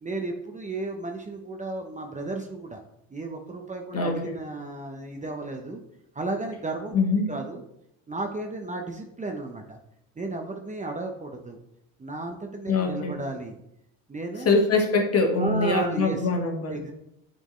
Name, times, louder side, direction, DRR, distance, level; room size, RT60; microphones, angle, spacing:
voice 1, 0.0-2.8 3.1-5.8 6.1-7.0 7.3-7.6 8.1-9.8 10.2-11.6 12.0-13.6 14.1-14.6 15.4-16.3 16.7-16.9, right 2 dB, 20° right, 3 dB, 0.9 m, -33 dB
voice 2, 3.9-4.3 6.9-7.3 12.7-13.1 14.5-16.8, left 3 dB, 35° left, 2 dB, 1.7 m, -23 dB
8.7 x 4.5 x 3.2 m, 0.79 s
supercardioid pair, 80°, 40 cm